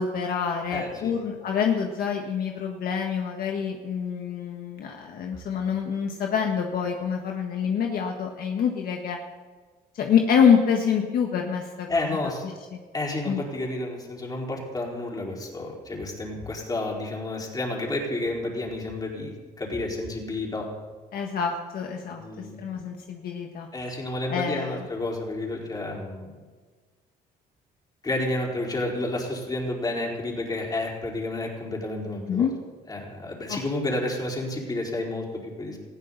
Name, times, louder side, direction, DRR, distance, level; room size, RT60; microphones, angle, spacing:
voice 1, 0.0-9.2 9.9-12.0 12.7-12.8 13.3-13.4 21.1-22.2 22.6-23.7 24.3-24.8 32.3-32.5 33.5-33.6, left 7 dB, 60° left, 2 dB, 1.6 m, -26 dB
voice 2, 0.7-1.2 11.9-12.5 12.9-20.7 22.1-22.9 23.7-26.3 28.0-32.5 32.9-35.8, left 2 dB, 25° left, -2 dB, 4.6 m, -30 dB
19.0 x 15.0 x 4.1 m, 1.4 s
cardioid pair, 110°, 17 cm